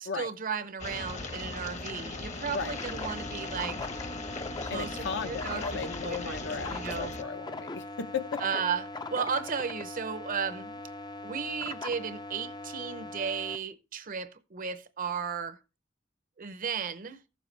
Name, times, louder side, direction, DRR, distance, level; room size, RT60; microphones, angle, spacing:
voice 1, 0.0-3.9 4.6-7.1 8.4-10.8 11.2-15.6 16.4-17.2, right 6 dB, 45° right, 0.7 m, -35 dB
sound 1, 0.8-7.2, left 3 dB, 40° left, 1.0 m, -39 dB
sound 2, 2.6-13.6, left 2 dB, 20° left, 0.5 m, -40 dB
voice 2, 4.7-8.4, left 5 dB, 65° left, 0.9 m, -36 dB
14.5 x 7.2 x 3.2 m
head